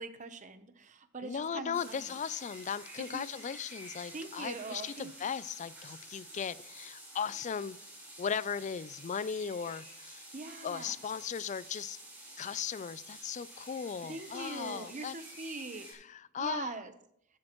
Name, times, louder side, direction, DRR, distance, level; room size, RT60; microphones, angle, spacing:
voice 1, 0.0-2.1 3.0-3.3 4.1-5.1 10.3-10.9 14.1-15.9 16.4-16.9, right 3 dB, 35° right, 0.8 m, -42 dB
voice 2, 1.2-7.8 8.2-10.2 10.6-12.0 12.4-15.1 15.9-16.8, left 7 dB, 35° left, 0.3 m, -37 dB
sound 1, 1.7-15.9, right 1 dB, 10° right, 5.0 m, -50 dB
14.0 x 10.5 x 3.0 m
head